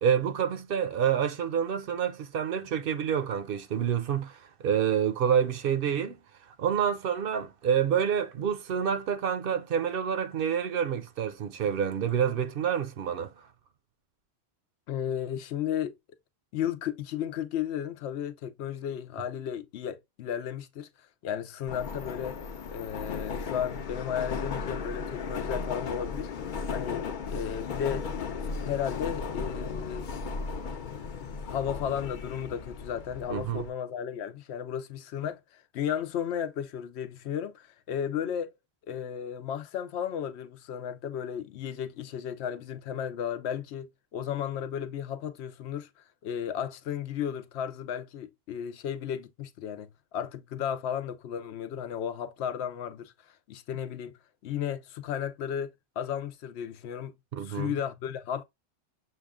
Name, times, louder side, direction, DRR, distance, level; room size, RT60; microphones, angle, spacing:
voice 1, 0.0-6.2 6.6-13.3 33.3-33.6 57.3-57.7, right 8 dB, 65° right, 0.7 m, -28 dB
voice 2, 14.9-15.9 16.5-20.9 21.2-22.4 22.7-26.3 26.7-28.1 28.4-30.1 31.4-38.6 38.9-57.1 57.4-58.4, left 9 dB, 80° left, 0.9 m, -34 dB
Subway metro underground, 21.7-33.7, left 5 dB, 55° left, 0.7 m, -36 dB
6.6 x 2.3 x 3.5 m
omnidirectional pair, 1.1 m